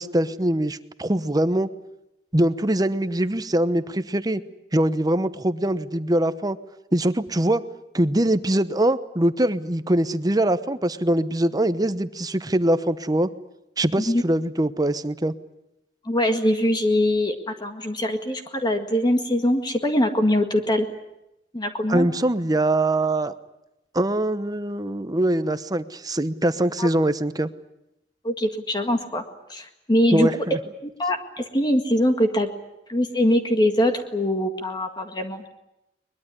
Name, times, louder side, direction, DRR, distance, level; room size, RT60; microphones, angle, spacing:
voice 1, 0.0-1.7 2.3-4.4 4.7-6.6 6.9-7.6 7.9-13.3 13.8-15.3 21.9-23.3 23.9-27.5 30.1-30.6, right 1 dB, 20° right, 12 dB, 1.0 m, -23 dB
voice 2, 16.1-20.9 21.5-22.1 26.8-26.9 28.2-29.2 29.5-30.3 30.8-32.5 32.9-35.5, left 1 dB, 25° left, 6 dB, 1.8 m, -22 dB
22.5 x 21.5 x 9.8 m, 0.87 s
head